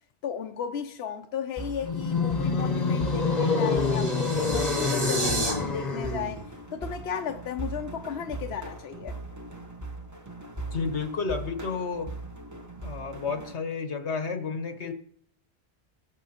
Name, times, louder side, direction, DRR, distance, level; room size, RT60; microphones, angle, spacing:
voice 1, 0.2-6.4 6.7-9.2, left 8 dB, 70° left, 0.9 m, -35 dB
sound 1, 1.6-13.5, right 2 dB, 15° right, 1.0 m, -39 dB
sound 2, 1.8-6.5, left 4 dB, 40° left, 1.0 m, -27 dB
sound 3, 2.8-5.5, right 1 dB, 55° right, 3.3 m, -33 dB
voice 2, 10.7-12.1 12.8-14.9, left 5 dB, 90° left, 1.5 m, -31 dB
21.5 x 7.2 x 2.9 m
omnidirectional pair, 1.1 m